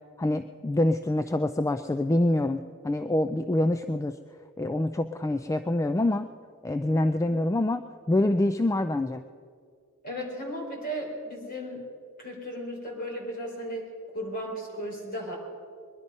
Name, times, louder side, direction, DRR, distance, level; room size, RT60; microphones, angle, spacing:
voice 1, 0.2-4.2 4.6-6.3 6.6-9.2, left 1 dB, 15° left, 9 dB, 0.3 m, -26 dB
voice 2, 10.0-11.8 12.2-13.9 14.1-15.4, equal, 40° left, -1 dB, 3.8 m, -35 dB
21.5 x 11.0 x 5.3 m, 2.1 s
head